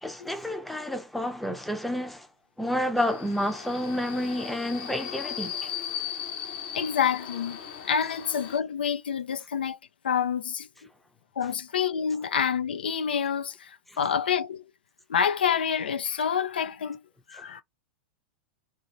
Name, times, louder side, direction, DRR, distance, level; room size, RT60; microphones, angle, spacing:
voice 1, 0.0-2.3 2.6-5.7 17.3-17.4, left 1 dB, ahead, 0.6 m, -30 dB
Subway metro underground, 3.0-8.6, left 9 dB, 55° left, 0.9 m, -37 dB
voice 2, 6.7-7.6 7.8-9.8 10.0-10.7 11.4-14.6 15.1-17.0 17.3-17.6, left 7 dB, 75° left, 0.4 m, -27 dB
2.8 x 2.1 x 3.0 m
hypercardioid pair, 100°, 5 cm